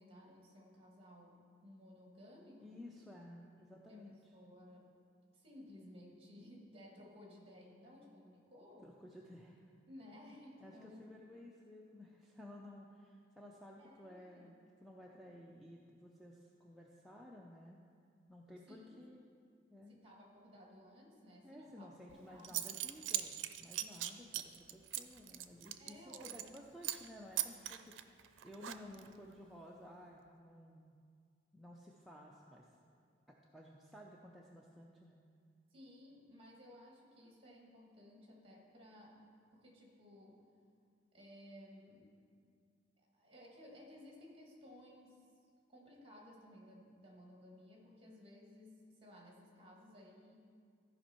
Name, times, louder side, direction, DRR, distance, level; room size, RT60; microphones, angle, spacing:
voice 1, 0.0-2.9 3.6-4.0 4.3-4.9 5.3-8.9 9.9-11.3 13.8-14.5 18.7-19.0 19.9-22.7 25.8-26.3 35.7-39.3 39.5-40.4 41.1-42.1 43.0-45.2 45.7-50.3, left 1 dB, 30° right, -2 dB, 1.8 m, -57 dB
voice 2, 2.6-4.2 8.8-9.7 10.6-17.8 18.3-19.2 19.7-20.1 21.4-30.9 31.5-32.7 33.3-35.2, left 1 dB, ahead, -3 dB, 0.5 m, -55 dB
Zipper (clothing) / Coin (dropping), 22.1-22.2 22.4-26.6 26.8-27.1 27.4-29.1, right 13 dB, 90° right, 0.4 m, -40 dB
14.0 x 5.4 x 4.4 m, 2.2 s
head